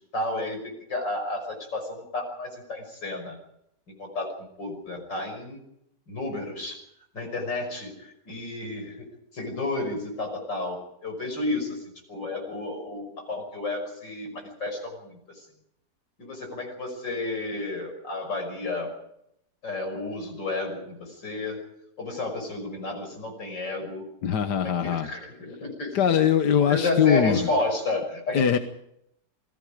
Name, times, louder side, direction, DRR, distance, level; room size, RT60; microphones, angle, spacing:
voice 1, 0.1-3.4 4.0-5.6 6.1-6.8 7.1-15.5 16.2-18.9 19.6-21.6 22.0-24.1 24.6-26.3 26.6-28.5, left 2 dB, 90° left, 4 dB, 6.3 m, -32 dB
voice 2, 24.2-25.1 25.9-27.5 28.3-28.6, left 8 dB, 70° left, 8 dB, 1.7 m, -22 dB
28.0 x 19.0 x 5.0 m, 0.77 s
omnidirectional pair, 1.9 m